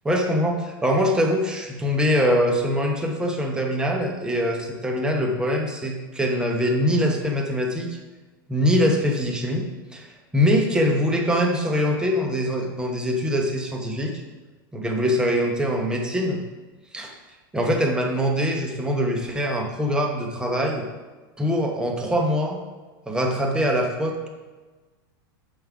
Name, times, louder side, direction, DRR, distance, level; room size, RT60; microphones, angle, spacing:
voice 1, 0.0-7.9 8.5-9.6 9.9-10.1 10.3-14.1 14.7-16.4 16.9-17.1 17.5-20.9 21.4-22.6 23.1-24.3, equal, 5° right, 1 dB, 0.9 m, -23 dB
6.0 x 5.3 x 4.7 m, 1.3 s
supercardioid pair, 130°, 12 cm